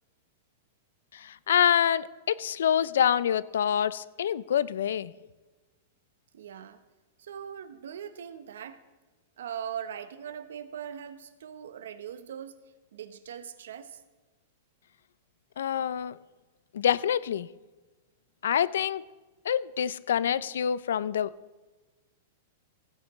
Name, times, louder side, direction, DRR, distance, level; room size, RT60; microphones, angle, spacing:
voice 1, 1.1-5.1 15.6-16.2 16.7-17.5 18.4-19.0 19.4-21.3, left 9 dB, 85° left, 19 dB, 0.4 m, -26 dB
voice 2, 6.3-6.8 7.2-8.8 9.4-12.6 12.9-14.0, right 8 dB, 85° right, 11 dB, 0.9 m, -40 dB
16.0 x 9.8 x 3.1 m, 1.2 s
supercardioid pair, 160°, 0 cm